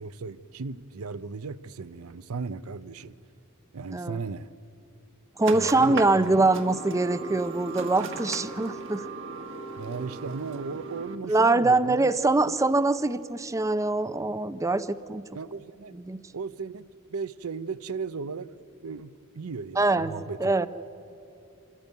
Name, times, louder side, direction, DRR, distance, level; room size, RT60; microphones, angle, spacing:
voice 1, 0.0-3.1 3.7-4.5 5.5-6.2 9.8-12.1 12.5-12.6 15.3-16.0 16.3-18.5 18.8-20.5, right 4 dB, 90° right, 0.6 m, -36 dB
voice 2, 5.4-9.1 11.3-15.2 15.9-16.2 19.8-20.1 20.4-20.7, right 2 dB, 15° right, 0.5 m, -23 dB
sound 1, 5.4-11.2, right 3 dB, 60° right, 1.3 m, -37 dB
26.5 x 14.5 x 9.3 m
head